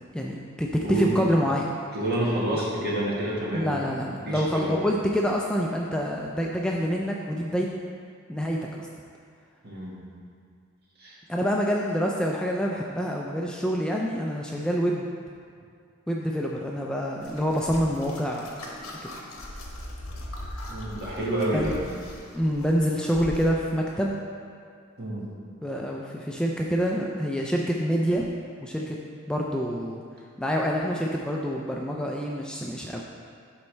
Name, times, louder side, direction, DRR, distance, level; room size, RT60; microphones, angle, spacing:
voice 1, 0.1-1.7 3.5-7.7 8.3-8.9 11.3-15.1 16.1-18.5 21.5-21.7 22.3-24.2 25.6-28.3 28.6-29.0 29.3-30.0 30.4-33.1, equal, 5° left, -2 dB, 0.3 m, -26 dB
voice 2, 0.8-1.3 1.9-4.8 9.6-10.0 11.0-11.2 20.7-21.8 25.0-25.3, right 1 dB, 50° right, -6 dB, 1.7 m, -29 dB
sound 1, 17.2-23.5, left 1 dB, 75° left, 1.1 m, -40 dB
11.5 x 4.2 x 3.3 m, 2.3 s
head